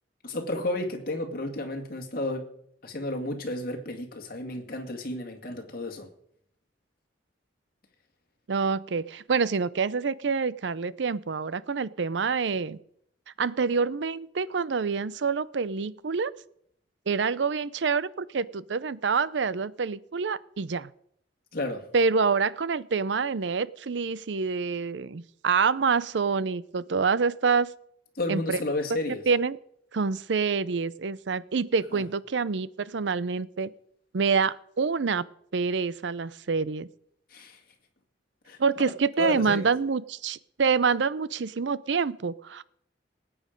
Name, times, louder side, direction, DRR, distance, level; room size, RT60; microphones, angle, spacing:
voice 1, 0.2-2.5 2.8-6.1 21.5-21.9 28.2-29.2 31.9-32.0 37.3-37.6 38.5-38.6 39.2-39.7, left 2 dB, 50° left, 3 dB, 2.2 m, -32 dB
voice 2, 8.5-12.8 13.4-16.3 17.1-20.9 21.9-27.7 28.3-28.6 29.3-29.6 29.9-33.7 34.1-35.2 35.5-36.9 38.6-42.6, right 5 dB, 75° right, 18 dB, 0.6 m, -27 dB
18.5 x 8.8 x 5.2 m, 0.70 s
head